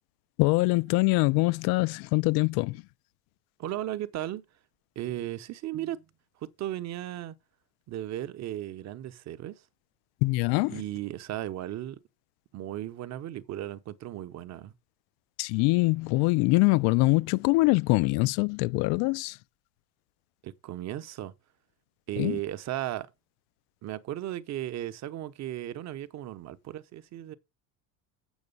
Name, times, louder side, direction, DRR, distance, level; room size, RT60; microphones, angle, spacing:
voice 1, 0.4-2.8 10.2-10.8 15.4-19.4 22.2-22.4, left 24 dB, 55° left, 0.5 m, -24 dB
voice 2, 3.6-4.4 5.0-6.0 6.4-7.4 7.9-9.6 10.7-12.0 12.5-14.7 20.4-21.3 22.1-23.1 23.8-27.3, right 13 dB, 35° right, 0.8 m, -36 dB
8.0 x 5.9 x 5.4 m
cardioid pair, 140°, 46 cm